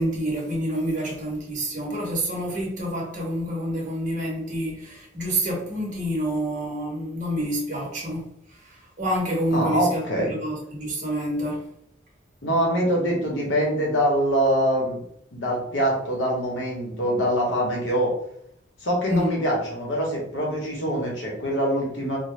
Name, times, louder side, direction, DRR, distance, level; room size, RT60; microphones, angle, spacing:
voice 1, 0.0-8.3 8.6-11.7 19.0-19.3, equal, 40° right, -3 dB, 1.0 m, -28 dB
voice 2, 9.5-10.3 12.4-15.0 15.3-18.1 18.8-22.2, equal, 80° left, -2 dB, 1.0 m, -24 dB
2.6 x 2.2 x 3.2 m, 0.72 s
head